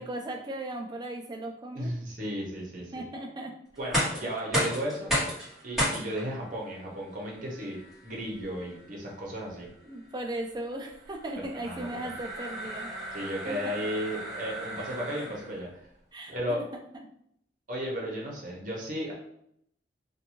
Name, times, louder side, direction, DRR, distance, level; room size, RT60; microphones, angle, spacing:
voice 1, 0.0-1.9 2.9-3.5 9.8-13.2 13.4-13.7 16.1-16.6, right 1 dB, 25° right, 2 dB, 0.3 m, -37 dB
voice 2, 1.7-3.1 3.8-5.1 5.6-7.8 8.0-9.7 11.6-12.1 13.1-15.7 16.3-16.6 17.7-19.1, equal, 45° right, -3 dB, 0.8 m, -34 dB
sound 1, 3.7-15.6, equal, ahead, 1.3 m, -35 dB
2.6 x 2.3 x 2.9 m, 0.73 s
head